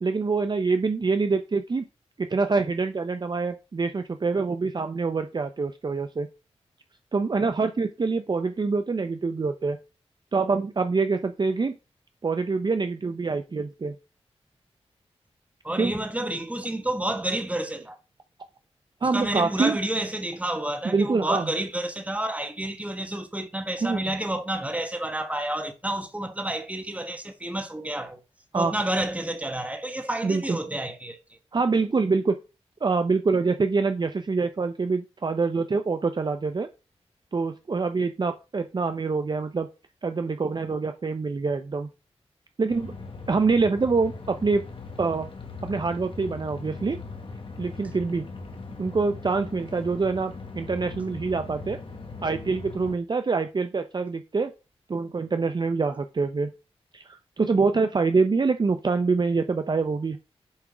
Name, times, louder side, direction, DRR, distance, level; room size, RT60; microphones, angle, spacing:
voice 1, 0.0-1.8 2.2-6.3 7.1-9.8 10.3-11.7 12.2-13.9 15.8-15.9 19.0-19.8 20.9-21.5 23.8-24.0 28.5-28.7 30.2-30.6 31.5-32.4 32.8-36.7 37.3-39.7 40.0-41.9 42.6-42.9 43.3-44.6 45.0-45.3 45.6-47.0 47.6-48.3 48.8-51.8 52.2-54.5 54.9-56.5 56.9-60.2, right 4 dB, 40° right, 0.6 m, -25 dB
voice 2, 15.6-18.0 19.1-28.2 28.5-31.4, right 1 dB, 10° right, 1.4 m, -30 dB
sound 1, 42.7-53.0, left 3 dB, 50° left, 1.4 m, -40 dB
7.2 x 3.6 x 4.9 m
wide cardioid pair, 70°, 11 cm